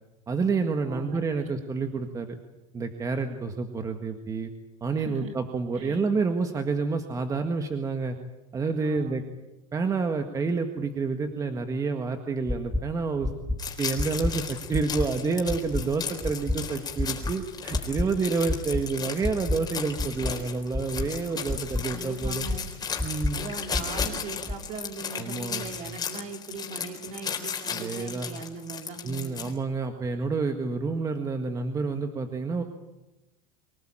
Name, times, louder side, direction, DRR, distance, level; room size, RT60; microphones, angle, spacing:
voice 1, 0.3-2.4 2.7-4.5 4.8-8.2 8.5-9.2 9.7-13.3 13.8-22.5 23.0-23.4 25.1-25.6 27.7-28.3 29.0-32.6, right 4 dB, 20° right, 6 dB, 1.7 m, -29 dB
voice 2, 0.9-1.5 5.0-5.3 5.8-6.0 8.8-9.2 18.0-18.2 21.9-22.6 23.3-29.5, right 4 dB, 45° right, 5 dB, 3.5 m, -40 dB
sound 1, 12.5-12.8 13.2-13.6 14.0-14.3 14.7-15.1 15.5-15.8 16.2-16.6 17.0-17.3 17.7-18.1 18.5-18.8 19.2-19.6 20.0-20.3 20.7-21.1 21.5-21.8 22.2-22.6 23.0-23.3 23.7-24.1 24.5-24.6, left 2 dB, ahead, 2.1 m, -28 dB
sound 2, 13.6-29.5, left 7 dB, 25° left, 4.0 m, -35 dB
25.0 x 18.0 x 9.0 m, 0.99 s
supercardioid pair, 135°, 17 cm